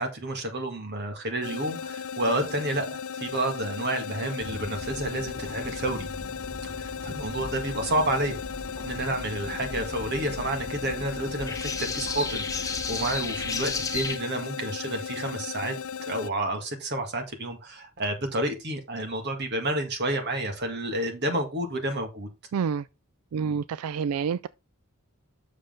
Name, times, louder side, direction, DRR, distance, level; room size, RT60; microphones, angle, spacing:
voice 1, 0.0-6.1 6.8-8.4 8.8-15.8 16.1-22.3, right 1 dB, 50° right, 2.1 m, -30 dB
sound 1, 1.4-16.3, left 7 dB, 70° left, 0.5 m, -36 dB
sound 2, 4.4-14.2, left 3 dB, 15° left, 1.3 m, -36 dB
voice 2, 22.5-22.9 23.3-24.5, right 6 dB, 85° right, 0.3 m, -28 dB
7.6 x 6.5 x 3.8 m
head